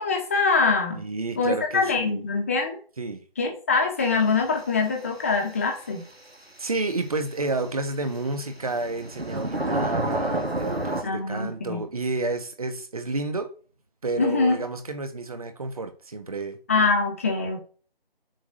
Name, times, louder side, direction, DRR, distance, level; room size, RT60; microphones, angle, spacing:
voice 1, 0.0-1.0 1.4-2.8 3.4-6.0 11.0-11.8 14.2-14.6 16.7-17.6, left 4 dB, 15° left, 1.4 m, -24 dB
voice 2, 1.0-2.3 3.0-3.2 6.6-13.5 14.0-16.6, right 3 dB, 35° right, 1.5 m, -30 dB
sound 1, 6.3-6.4 8.5-11.0, right 1 dB, 90° right, 2.4 m, -28 dB
7.4 x 6.2 x 7.7 m
figure-of-eight pair, 160°, 30 cm